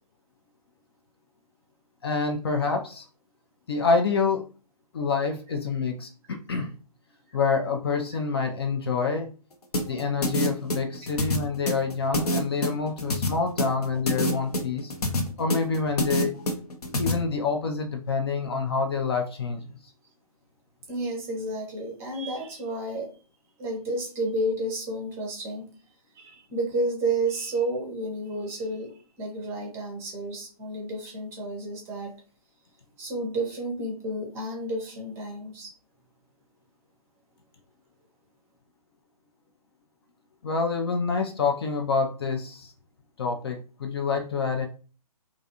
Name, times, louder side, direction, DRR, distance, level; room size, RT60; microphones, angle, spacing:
voice 1, 2.0-3.1 3.7-4.5 4.9-6.7 7.3-9.3 9.8-14.9 15.4-16.3 17.0-19.7 40.4-42.7 43.2-44.7, left 4 dB, 40° left, 3 dB, 0.4 m, -27 dB
sound 1, 9.7-17.1, left 1 dB, 75° left, 0.7 m, -26 dB
voice 2, 20.9-23.1 23.6-25.7 26.1-32.2 33.0-35.7, right 1 dB, 15° right, -1 dB, 0.6 m, -31 dB
2.5 x 2.3 x 2.7 m, 0.37 s
figure-of-eight pair, 135°, 20 cm